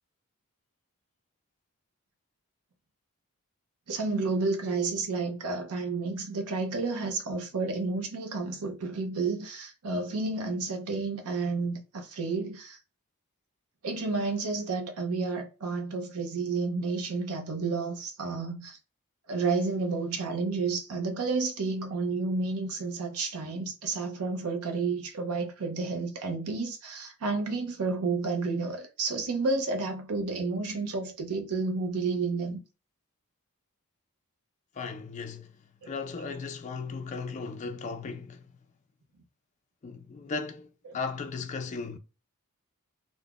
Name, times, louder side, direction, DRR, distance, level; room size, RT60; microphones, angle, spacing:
voice 1, 3.9-12.8 13.8-18.8 19.3-32.6 35.8-36.3 40.8-41.0, right 3 dB, 80° right, 0.6 m, -31 dB
voice 2, 34.8-35.5 35.8-38.4 39.8-40.7 40.9-42.0, left 4 dB, 30° left, 0.3 m, -36 dB
2.3 x 2.0 x 3.4 m
head